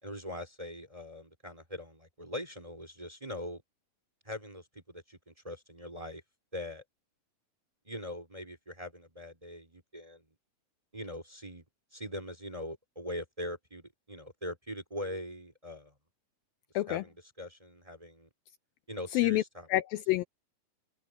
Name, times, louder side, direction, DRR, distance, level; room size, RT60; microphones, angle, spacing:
voice 1, 0.0-3.6 4.2-6.2 6.5-6.8 7.8-10.2 10.9-11.6 11.9-15.9 16.9-18.3 18.9-19.7, left 1 dB, 10° right, 2.8 m, -42 dB
voice 2, 19.1-19.4 19.7-20.2, left 16 dB, 85° left, 2.2 m, -27 dB
open air
omnidirectional pair, 4.7 m